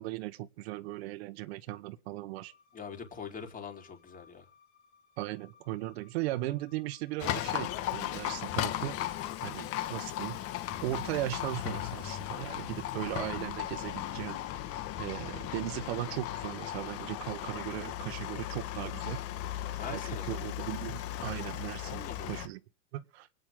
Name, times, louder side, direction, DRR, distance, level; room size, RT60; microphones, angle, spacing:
voice 1, 0.0-2.5 5.2-9.0 9.4-10.4 10.8-14.4 15.0-19.2 19.9-22.6 22.9-23.3, right 16 dB, 65° right, 1.3 m, -37 dB
sound 1, 2.4-8.4, left 6 dB, 60° left, 3.9 m, -63 dB
voice 2, 2.7-4.5 19.8-20.4 21.8-22.4, left 6 dB, 25° left, 4.2 m, -43 dB
Livestock farm animals working animals, 7.2-22.5, left 12 dB, 40° left, 1.7 m, -36 dB
24.5 x 9.4 x 3.8 m
supercardioid pair, 120°, 34 cm